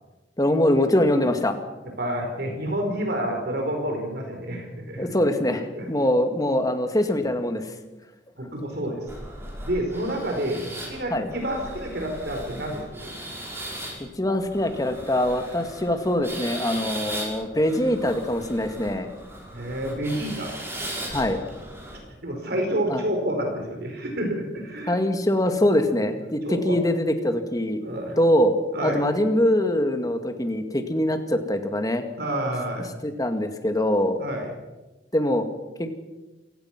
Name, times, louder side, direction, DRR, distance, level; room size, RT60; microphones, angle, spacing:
voice 1, 0.4-1.6 5.0-7.7 11.1-11.3 14.2-19.1 21.1-21.4 22.9-23.0 24.9-27.8 28.2-28.5 28.8-32.0 33.0-34.2 35.1-35.5 35.8-36.0, left 1 dB, 20° left, 6 dB, 2.2 m, -23 dB
voice 2, 2.0-5.1 5.7-5.9 8.4-9.0 9.6-13.1 16.7-16.9 19.5-20.5 21.9-25.0 26.5-26.7 27.4-27.5 27.8-28.1 28.7-29.0 32.2-32.9 34.2-34.5, right 1 dB, 60° right, 2 dB, 4.9 m, -29 dB
sound 1, 9.1-22.0, right 1 dB, 15° right, 5.8 m, -38 dB
28.0 x 17.5 x 6.1 m, 1.1 s
head